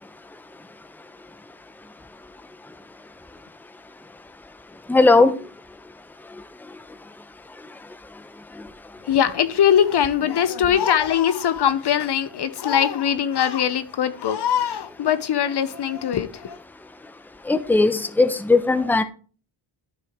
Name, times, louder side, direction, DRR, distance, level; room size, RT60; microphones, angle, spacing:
voice 1, 4.9-5.3 17.5-19.0, left 3 dB, 5° left, 0.7 m, -17 dB
voice 2, 9.0-16.6, left 9 dB, 60° left, 0.7 m, -21 dB
12.0 x 4.7 x 3.5 m
cardioid pair, 75°, 45 cm